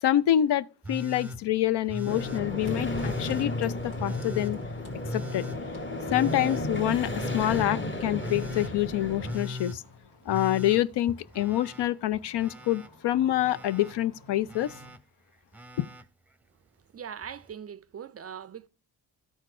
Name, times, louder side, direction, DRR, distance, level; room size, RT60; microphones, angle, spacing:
voice 1, 0.0-3.7 4.0-4.6 5.1-5.4 6.1-9.8 10.3-14.7 15.8-15.9, left 13 dB, 60° left, 0.5 m, -26 dB
Telephone, 0.8-1.4 1.9-2.4 2.9-3.5 4.0-4.5 5.0-5.6 6.1-6.6 7.1-7.7 8.2-8.7 9.2-9.8 10.3-11.8 12.1-12.9 13.4-13.9 14.5-15.0 15.5-16.0 17.2-17.3, left 2 dB, 5° right, 0.8 m, -38 dB
Livestock farm animals working animals, 2.1-14.9, left 2 dB, 80° left, 2.2 m, -54 dB
sound 1, 2.1-9.4, left 1 dB, 25° left, 1.2 m, -33 dB
voice 2, 16.9-18.7, right 8 dB, 35° right, 0.4 m, -41 dB
12.5 x 4.5 x 4.8 m
supercardioid pair, 50°, 48 cm